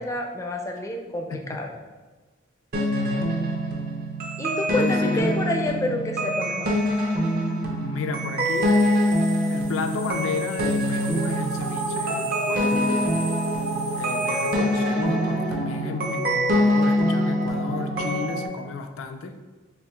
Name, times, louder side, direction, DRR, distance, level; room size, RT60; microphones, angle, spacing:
voice 1, 0.0-1.7 4.4-6.7, left 1 dB, 15° left, 2 dB, 0.4 m, -28 dB
sound 1, 2.7-18.5, equal, 50° right, 0.6 m, -24 dB
voice 2, 3.0-3.4 4.7-5.3 7.9-13.1 13.9-19.3, left 4 dB, 90° left, 6 dB, 0.4 m, -33 dB
sound 2, 8.3-14.5, right 3 dB, 75° right, 1.5 m, -40 dB
4.7 x 3.0 x 2.2 m, 1.3 s
head